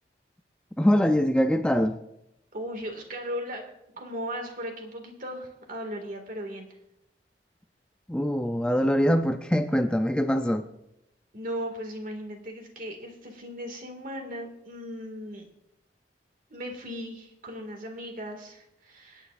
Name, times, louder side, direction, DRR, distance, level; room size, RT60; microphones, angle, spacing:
voice 1, 0.8-2.0 8.1-10.7, equal, 5° left, 7 dB, 0.4 m, -23 dB
voice 2, 2.5-3.7 4.0-6.7 11.3-15.5 16.5-19.3, equal, 50° right, 3 dB, 2.0 m, -37 dB
26.0 x 8.9 x 2.5 m, 0.85 s
head